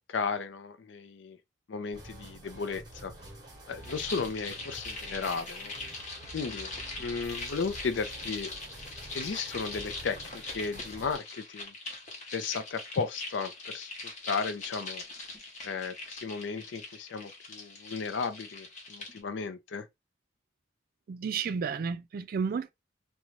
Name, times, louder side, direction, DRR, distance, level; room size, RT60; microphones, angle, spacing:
voice 1, 0.1-1.4 1.7-3.1 3.7-5.7 6.3-6.7 7.0-8.5 9.1-11.7 12.3-13.9 14.2-15.0 15.6-19.9, left 5 dB, 75° left, 0.5 m, -34 dB
sound 1, 1.9-11.2, right 1 dB, 20° right, 0.9 m, -48 dB
sound 2, 3.8-19.2, left 3 dB, 40° left, 0.9 m, -42 dB
voice 2, 21.1-22.7, right 6 dB, 55° right, 0.3 m, -32 dB
2.5 x 2.2 x 3.0 m
head